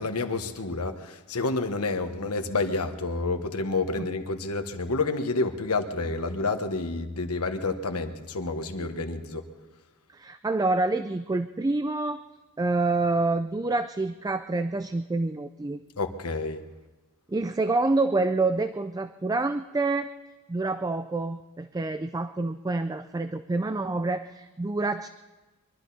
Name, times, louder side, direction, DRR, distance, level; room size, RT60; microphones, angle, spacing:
voice 1, 0.0-9.4 16.0-16.6, left 3 dB, 80° left, 6 dB, 1.3 m, -29 dB
voice 2, 10.1-12.2 12.6-15.8 17.3-20.1 20.5-25.1, right 3 dB, 15° right, 10 dB, 0.4 m, -27 dB
23.0 x 12.5 x 4.2 m, 1.2 s
head